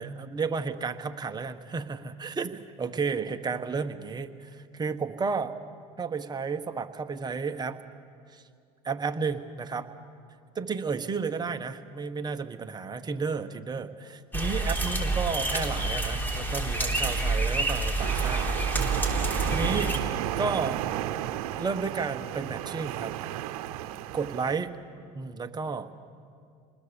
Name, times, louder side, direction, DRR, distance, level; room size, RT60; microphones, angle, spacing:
voice 1, 0.0-5.5 6.0-7.8 8.3-8.4 8.8-9.9 10.5-18.5 18.8-20.8 21.6-23.2 24.1-24.8 25.1-25.9, right 5 dB, 20° right, 7 dB, 1.3 m, -32 dB
sound 1, 14.3-20.0, right 2 dB, 10° left, 3.5 m, -28 dB
sound 2, 18.0-24.5, right 13 dB, 80° right, 0.9 m, -33 dB
27.5 x 20.5 x 7.0 m, 2.3 s
supercardioid pair, 100°, 19 cm